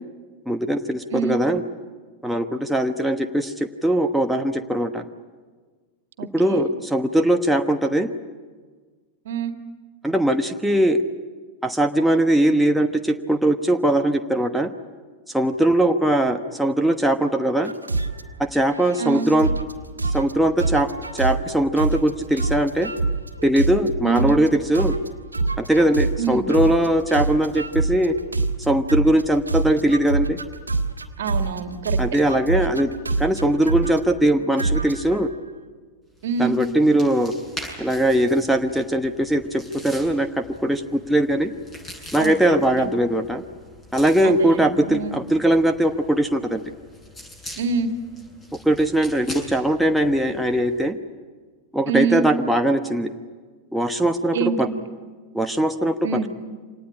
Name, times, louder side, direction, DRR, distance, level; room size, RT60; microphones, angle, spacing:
voice 1, 0.5-1.6 2.2-5.0 6.3-8.1 10.0-11.0 11.6-14.7 15.3-17.7 18.4-19.5 20.1-20.9 21.1-22.9 23.4-25.0 25.6-28.1 28.6-30.4 32.0-32.9 33.2-35.3 36.4-37.3 37.8-41.5 42.1-43.4 43.9-46.6 48.6-51.0 51.7-53.1 53.7-54.7 55.3-55.9, right 1 dB, ahead, 4 dB, 1.2 m, -20 dB
voice 2, 6.2-6.6 9.3-9.5 19.0-19.3 24.0-24.3 26.2-26.5 31.2-32.0 36.2-36.6 42.2-42.9 44.2-45.2 47.6-47.9 51.9-52.2 54.3-54.8 56.0-56.3, right 6 dB, 60° right, 7 dB, 2.0 m, -26 dB
sound 1, 17.7-18.2 18.7-19.7 20.0-20.3 20.6-21.5 21.8-22.1 22.4-24.5 24.7-29.2 29.5-31.6 31.8-34.0 34.6-35.2, right 3 dB, 80° right, 1.7 m, -25 dB
sound 2, 36.1-50.8, left 1 dB, 20° left, 7.6 m, -43 dB
26.0 x 19.0 x 9.9 m, 1.5 s
figure-of-eight pair, 90°, 0 cm